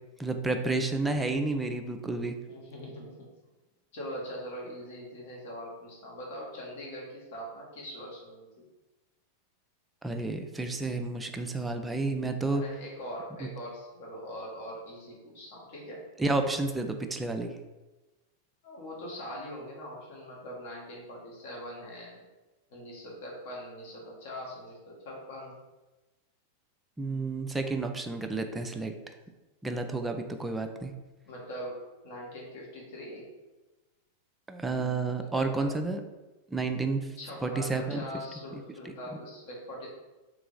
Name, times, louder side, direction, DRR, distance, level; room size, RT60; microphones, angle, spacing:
voice 1, 0.2-2.4 10.0-12.6 13.4-13.5 16.2-17.6 27.0-28.9 29.6-30.9 34.5-36.0 36.5-37.1 37.4-38.1 38.5-38.6 38.9-39.0, right 3 dB, 10° right, 5 dB, 0.4 m, -31 dB
voice 2, 2.5-3.3 3.9-8.6 12.4-16.0 18.6-22.2 22.7-25.6 31.2-33.2 35.4-35.7 37.2-39.9, equal, 50° left, -3 dB, 1.3 m, -42 dB
3.2 x 2.8 x 3.8 m, 1.1 s
figure-of-eight pair, 90°, 0 cm